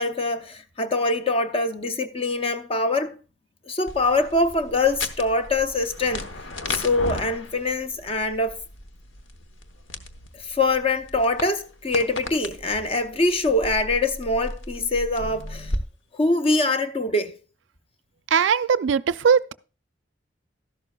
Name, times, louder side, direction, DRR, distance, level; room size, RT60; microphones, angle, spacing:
voice 1, 0.0-3.2 3.7-6.3 6.7-8.6 10.3-15.7 16.1-17.3, left 2 dB, 30° left, 0.7 m, -24 dB
sound 1, 3.9-15.8, left 2 dB, 90° left, 1.0 m, -36 dB
voice 2, 18.3-19.5, right 6 dB, 75° right, 0.4 m, -20 dB
12.5 x 11.5 x 2.3 m
head